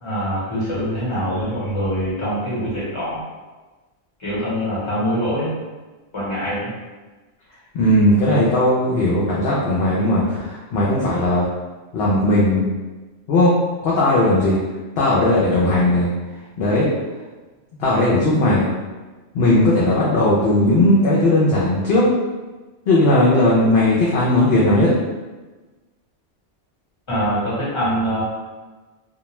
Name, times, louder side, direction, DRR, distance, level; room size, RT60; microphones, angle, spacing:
voice 1, 0.0-3.2 4.2-5.5 6.1-6.7 27.1-28.2, equal, 25° left, -9 dB, 1.0 m, -24 dB
voice 2, 7.7-11.4 11.9-12.7 13.3-13.5 13.8-14.6 15.0-16.1 16.6-16.9 17.8-18.7 19.3-22.0 22.9-24.9, left 1 dB, 65° left, -6 dB, 0.7 m, -17 dB
2.3 x 2.2 x 3.0 m, 1.2 s
omnidirectional pair, 1.3 m